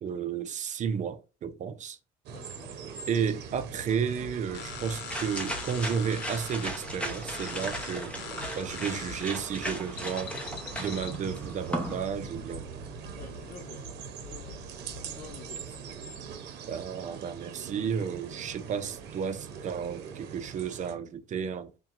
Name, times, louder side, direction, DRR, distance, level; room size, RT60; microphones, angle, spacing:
voice 1, 0.0-2.0 3.1-8.1 8.6-10.3 10.8-12.7 16.7-21.7, right 7 dB, 45° right, 0.5 m, -32 dB
voice 2, 2.3-2.8 13.1-13.9 14.2-14.7 15.0-15.8, left 7 dB, 55° left, 0.7 m, -49 dB
sound 1, 2.3-21.0, right 7 dB, 80° right, 0.8 m, -43 dB
sound 2, 3.4-16.4, left 6 dB, 85° left, 0.8 m, -45 dB
sound 3, 4.5-12.0, equal, 5° left, 0.9 m, -38 dB
3.6 x 2.2 x 4.3 m
cardioid pair, 110°, 17 cm